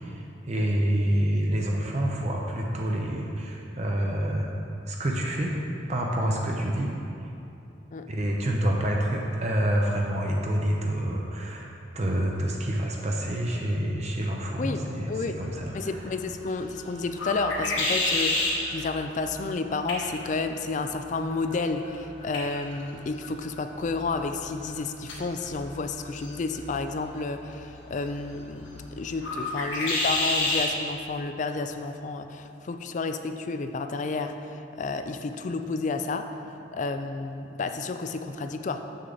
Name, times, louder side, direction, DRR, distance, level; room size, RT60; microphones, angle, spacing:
voice 1, 0.0-4.5 4.9-5.5 5.9-6.9 8.1-16.0, right 1 dB, 35° right, -1 dB, 0.6 m, -27 dB
voice 2, 14.6-15.4 15.7-36.2 36.7-38.8, left 3 dB, 40° left, 7 dB, 0.3 m, -31 dB
sound 1, 15.4-30.7, left 2 dB, 75° left, 1.4 m, -33 dB
7.2 x 6.4 x 3.9 m, 2.8 s
head